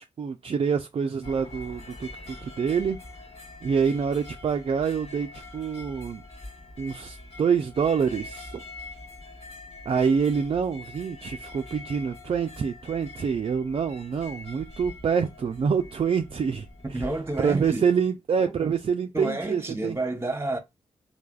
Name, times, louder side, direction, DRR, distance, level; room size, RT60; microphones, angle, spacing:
voice 1, 0.2-3.0 3.6-6.2 6.8-8.6 9.9-16.7 17.4-19.9, right 6 dB, 45° right, 0.4 m, -26 dB
sound 1, 1.2-17.7, left 2 dB, 50° left, 1.3 m, -44 dB
voice 2, 16.9-17.8 18.5-18.7 19.1-20.6, right 2 dB, 20° right, 0.9 m, -30 dB
3.2 x 2.2 x 2.3 m
supercardioid pair, 40°, 14 cm